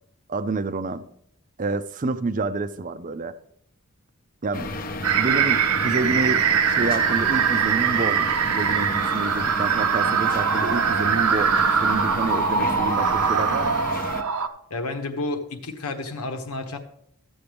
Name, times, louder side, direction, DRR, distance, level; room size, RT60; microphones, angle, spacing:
voice 1, 0.3-1.0 1.6-3.3 4.4-4.7 5.2-13.7, right 3 dB, 35° right, 0.5 m, -28 dB
sound 1, 4.5-14.2, left 2 dB, 40° left, 0.7 m, -32 dB
sound 2, 5.0-14.5, right 7 dB, 85° right, 0.7 m, -22 dB
voice 2, 14.7-16.8, left 2 dB, 80° left, 1.2 m, -30 dB
13.5 x 7.8 x 3.5 m
head